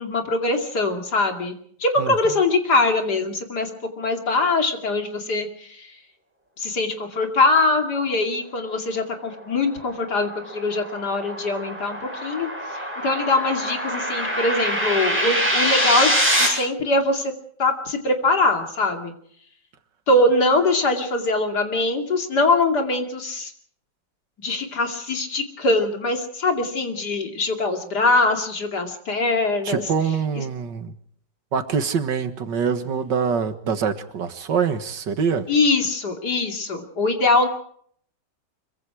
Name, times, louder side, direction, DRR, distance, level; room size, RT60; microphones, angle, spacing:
voice 1, 0.0-1.5 1.8-3.7 4.0-5.9 6.6-12.5 12.7-17.3 17.6-19.1 20.1-23.5 24.4-29.8 30.3-30.4 35.5-37.5, left 2 dB, 65° left, 4 dB, 3.2 m, -22 dB
sound 1, 9.6-16.5, equal, 5° right, 7.4 m, -24 dB
voice 2, 29.7-30.9 31.5-35.5, right 6 dB, 85° right, 9 dB, 2.2 m, -24 dB
25.0 x 23.5 x 4.9 m, 0.63 s
omnidirectional pair, 1.9 m